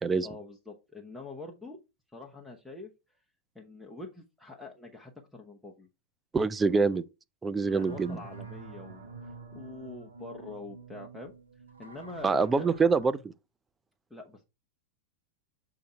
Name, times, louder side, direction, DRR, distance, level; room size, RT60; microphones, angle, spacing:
voice 1, 0.2-1.8 2.1-2.9 3.5-5.9 7.7-11.3 11.8-12.7 14.1-14.4, left 2 dB, ahead, 1.1 m, -45 dB
voice 2, 6.3-7.0 7.4-8.2 12.2-13.2, right 4 dB, 15° right, 0.5 m, -25 dB
sound 1, 7.7-13.1, right 3 dB, 75° right, 1.0 m, -47 dB
6.9 x 3.8 x 4.6 m
figure-of-eight pair, 90°, 0 cm